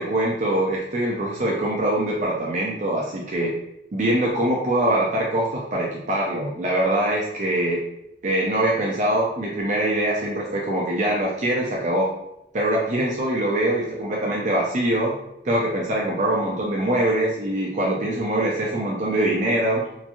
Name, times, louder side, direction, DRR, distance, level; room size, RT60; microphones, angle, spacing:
voice 1, 0.0-3.5 3.9-7.8 8.2-12.1 12.5-15.1 15.4-19.9, right 1 dB, 40° right, -3 dB, 0.4 m, -23 dB
3.0 x 2.5 x 2.3 m, 0.83 s
head